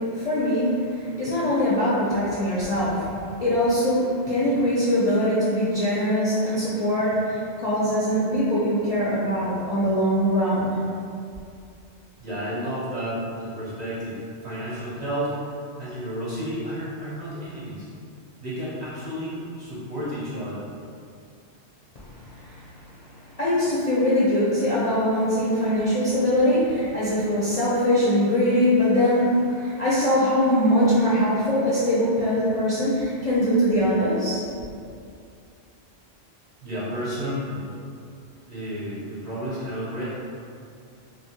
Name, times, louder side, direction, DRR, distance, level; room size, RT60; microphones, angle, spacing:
voice 1, 0.0-10.8 22.0-22.6 22.9-34.4, equal, 50° left, -9 dB, 0.4 m, -22 dB
voice 2, 12.2-15.3 15.8-17.9 18.4-20.6 36.6-37.7 38.5-40.0, equal, 45° right, -9 dB, 0.7 m, -31 dB
2.9 x 2.2 x 2.7 m, 2.4 s
omnidirectional pair, 1.2 m